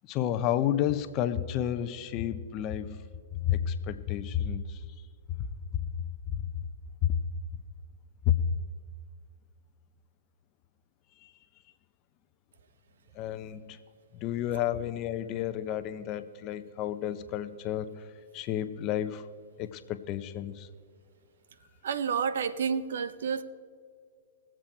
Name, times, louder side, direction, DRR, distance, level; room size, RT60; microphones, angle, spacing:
voice 1, 0.1-3.0 3.3-4.8 5.7-5.9 6.3-6.5 7.0-7.2 8.3-8.4 13.1-13.8 14.1-18.1 18.3-19.3 19.6-20.7, left 10 dB, 35° left, 11 dB, 0.7 m, -31 dB
voice 2, 21.8-23.4, right 6 dB, 70° right, 14 dB, 0.7 m, -29 dB
20.0 x 7.6 x 4.4 m, 2.1 s
hypercardioid pair, 130°, 0 cm